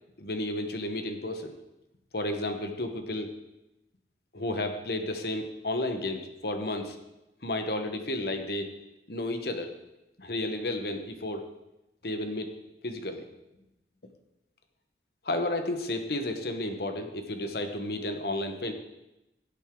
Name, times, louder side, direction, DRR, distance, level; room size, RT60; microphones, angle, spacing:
voice 1, 0.2-1.5 2.1-3.3 4.3-7.0 7.4-8.7 9.1-9.7 10.2-11.5 12.0-12.6 12.8-13.2 15.2-18.7, left 1 dB, 60° left, 6 dB, 1.2 m, -32 dB
17.0 x 8.1 x 3.8 m, 0.95 s
head